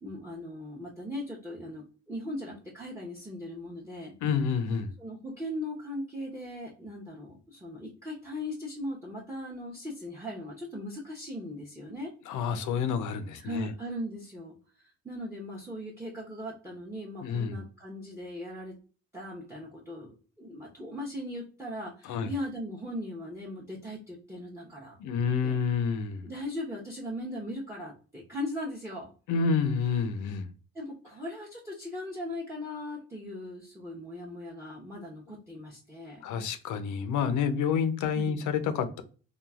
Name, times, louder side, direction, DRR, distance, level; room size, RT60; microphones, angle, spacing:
voice 1, 0.0-4.1 5.0-12.1 13.3-18.8 19.1-20.1 20.4-25.0 25.4-25.6 26.2-29.1 30.7-36.2 38.1-38.4, left 1 dB, 10° right, 0.7 m, -39 dB
voice 2, 4.2-4.9 12.3-13.7 17.2-17.6 22.1-22.3 25.0-26.3 29.3-30.5 36.2-39.0, left 6 dB, 75° left, 0.5 m, -29 dB
3.0 x 2.3 x 2.3 m
cardioid pair, 90°, 30 cm